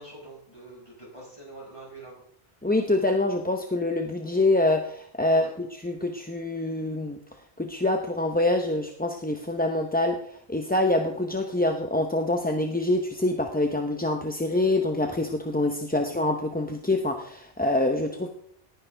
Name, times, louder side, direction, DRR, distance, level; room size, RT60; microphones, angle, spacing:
voice 1, 0.0-2.2 5.2-5.5, right 2 dB, 30° left, -5 dB, 6.0 m, -45 dB
voice 2, 2.6-7.2 7.6-18.3, left 2 dB, 10° left, 4 dB, 0.7 m, -25 dB
18.5 x 10.5 x 3.4 m, 0.64 s
omnidirectional pair, 1.0 m